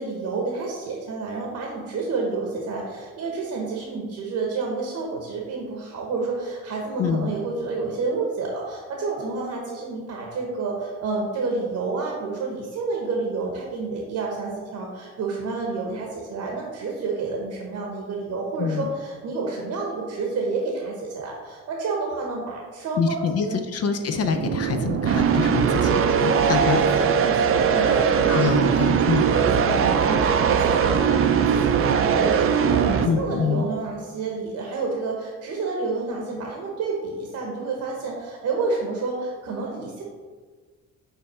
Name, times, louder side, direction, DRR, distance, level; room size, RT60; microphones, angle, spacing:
voice 1, 0.0-23.6 25.6-26.7 27.1-40.0, right 3 dB, 70° right, -1 dB, 1.1 m, -29 dB
voice 2, 7.0-7.3 18.6-18.9 23.0-26.8 28.3-29.2 33.0-33.7, left 6 dB, 55° left, 7 dB, 0.5 m, -25 dB
sound 1, 24.1-33.1, right 7 dB, 45° right, 0.5 m, -20 dB
5.5 x 4.2 x 4.2 m, 1.5 s
cardioid pair, 90°, 30 cm